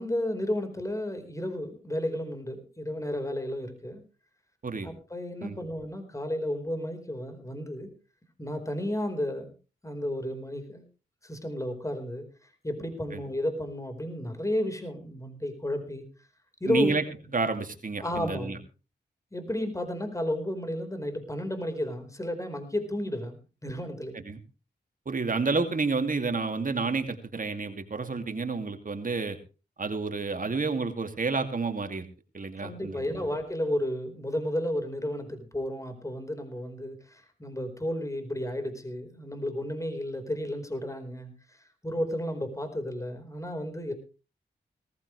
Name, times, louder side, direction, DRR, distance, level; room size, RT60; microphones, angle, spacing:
voice 1, 0.0-4.0 4.8-7.9 8.4-9.5 9.8-10.8 11.2-12.3 12.6-16.0 16.6-16.9 18.0-18.6 19.3-24.2 32.6-41.3 41.8-43.9, left 1 dB, 15° left, 7 dB, 4.5 m, -32 dB
voice 2, 16.7-17.0 17.3-18.6 24.2-24.4 25.1-29.4 29.8-32.1 32.3-33.0, right 4 dB, 50° right, 7 dB, 2.5 m, -30 dB
18.0 x 15.0 x 3.3 m, 0.33 s
cardioid pair, 50°, 18 cm